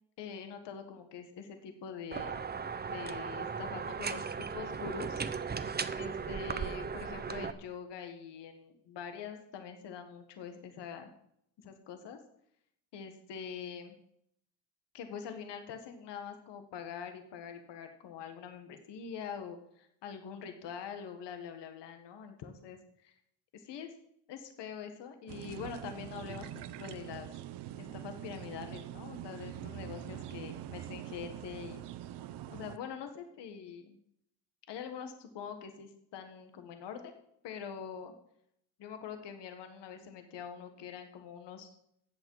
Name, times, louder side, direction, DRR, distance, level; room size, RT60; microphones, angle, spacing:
voice 1, 0.2-2.4 2.9-5.2 5.9-11.1 11.6-12.2 12.9-14.0 14.9-23.2 23.5-23.9 24.3-27.3 27.8-31.8 32.5-34.0 34.7-37.2 37.4-38.1 38.8-41.7, left 7 dB, 75° left, 6 dB, 1.6 m, -44 dB
sound 1, 2.1-7.5, right 5 dB, 25° right, 0.7 m, -37 dB
sound 2, 25.3-32.8, right 12 dB, 70° right, 0.8 m, -44 dB
14.5 x 8.5 x 4.8 m, 0.73 s
cardioid pair, 100°, 42 cm